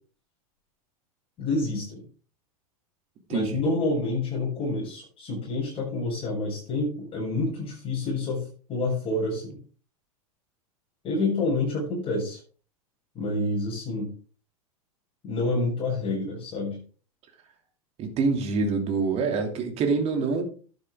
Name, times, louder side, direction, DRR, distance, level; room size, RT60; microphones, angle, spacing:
voice 1, 1.4-2.0 3.3-9.5 11.0-12.4 13.1-14.1 15.2-16.8, left 2 dB, 30° left, -5 dB, 7.3 m, -28 dB
voice 2, 18.0-20.4, right 4 dB, 35° right, 4 dB, 2.8 m, -25 dB
11.5 x 9.4 x 3.7 m, 0.39 s
figure-of-eight pair, 90°, 19 cm